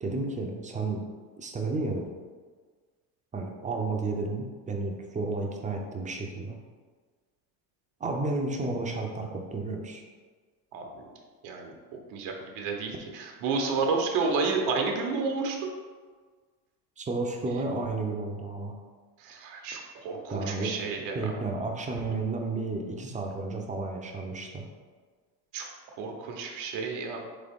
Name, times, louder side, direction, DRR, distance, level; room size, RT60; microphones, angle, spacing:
voice 1, 0.0-1.0 1.4-2.1 3.3-6.6 8.0-10.0 17.0-18.8 20.3-20.9 21.1-24.6, right 3 dB, 15° right, 1 dB, 0.5 m, -32 dB
voice 2, 12.1-15.7 19.2-21.4 25.5-25.7 26.0-27.2, right 4 dB, 70° right, 2 dB, 1.0 m, -31 dB
3.9 x 3.9 x 3.5 m, 1.5 s
supercardioid pair, 105°, 46 cm